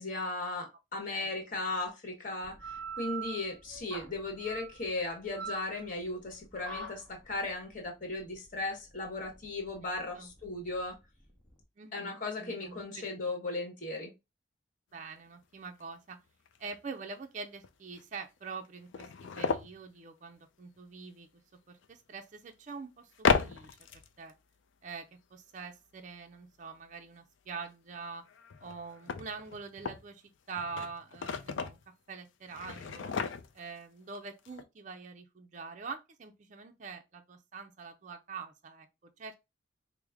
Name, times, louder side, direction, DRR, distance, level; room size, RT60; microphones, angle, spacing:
voice 1, 0.0-11.0 11.9-14.1, left 2 dB, 40° left, 1.1 m, -37 dB
sound 1, 2.4-11.6, right 5 dB, 5° left, 0.9 m, -45 dB
voice 2, 11.8-13.3 14.9-16.2 16.6-21.3 21.7-23.9 24.2-24.3 24.8-28.3 28.6-31.8 32.1-33.1 33.5-38.9 39.2-39.4, right 4 dB, 40° right, 0.4 m, -45 dB
sound 2, 15.4-15.5 15.8-15.9 16.5-16.6 17.6-17.7 18.0-18.1 18.6-19.8 21.8-21.9 23.1-24.3 28.3-30.1 30.5-31.8 32.5-33.8 34.1-34.2 34.5-34.6, left 5 dB, 70° left, 0.4 m, -34 dB
4.7 x 2.0 x 3.4 m
head